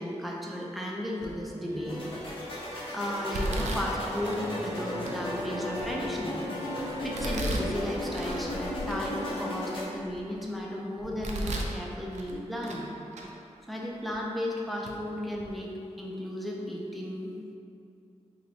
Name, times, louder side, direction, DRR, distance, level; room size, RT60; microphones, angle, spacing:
voice 1, 0.0-2.1 2.5-6.5 7.0-12.9 13.7-15.7 16.0-17.5, left 1 dB, ahead, -3 dB, 0.4 m, -34 dB
Domestic sounds home sounds, 1.2-1.6 2.2-2.6 3.3-4.5 5.1-5.2 5.7-6.5 7.1-8.5 8.9-9.0 9.6-10.5 11.0-11.8 12.1-12.9 13.1-13.3 14.1-14.2 14.8-15.0 15.3-15.5, right 1 dB, 75° right, 0.4 m, -35 dB
sound 1, 1.6-7.3, equal, 30° right, 0.8 m, -40 dB
sound 2, 1.9-9.9, left 1 dB, 50° left, 0.7 m, -36 dB
3.9 x 2.5 x 3.1 m, 2.6 s
wide cardioid pair, 150°, 12 cm